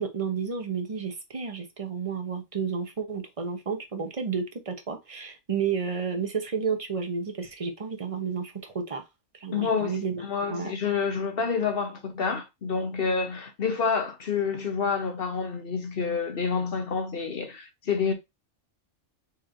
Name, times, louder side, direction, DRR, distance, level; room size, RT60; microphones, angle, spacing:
voice 1, 0.0-9.0 9.4-10.2 10.5-10.7, right 6 dB, 30° right, 0.8 m, -31 dB
voice 2, 9.5-18.1, left 5 dB, 50° left, 1.0 m, -28 dB
4.3 x 3.1 x 3.8 m
omnidirectional pair, 1.3 m